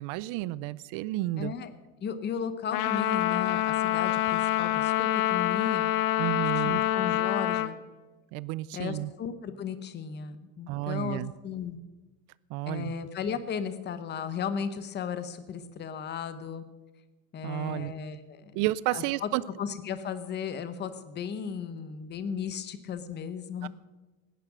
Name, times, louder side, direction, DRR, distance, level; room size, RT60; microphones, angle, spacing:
voice 1, 0.0-1.5 6.2-6.8 8.3-9.1 10.7-11.3 12.5-12.9 17.4-17.9 18.5-19.4 23.6-23.7, right 17 dB, 50° right, 20 dB, 0.5 m, -31 dB
voice 2, 1.4-1.7 2.0-5.9 6.6-7.8 8.7-11.8 12.7-16.6 17.3-18.6 18.9-19.3 19.6-23.7, left 7 dB, 25° left, 12 dB, 0.9 m, -35 dB
Trumpet, 2.7-7.7, left 14 dB, 75° left, 0.9 m, -26 dB
17.5 x 10.0 x 6.2 m, 1.2 s
supercardioid pair, 145°, 42 cm